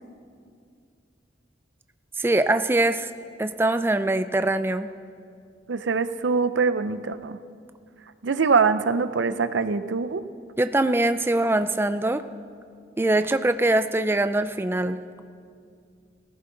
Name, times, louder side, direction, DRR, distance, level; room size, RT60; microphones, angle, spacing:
voice 1, 2.2-3.1 3.4-4.9 10.6-12.3 13.0-15.0, right 2 dB, 10° right, 11 dB, 0.4 m, -23 dB
voice 2, 5.7-7.4 8.2-10.2, right 5 dB, 75° right, 12 dB, 0.6 m, -23 dB
18.5 x 14.5 x 3.9 m, 2.3 s
head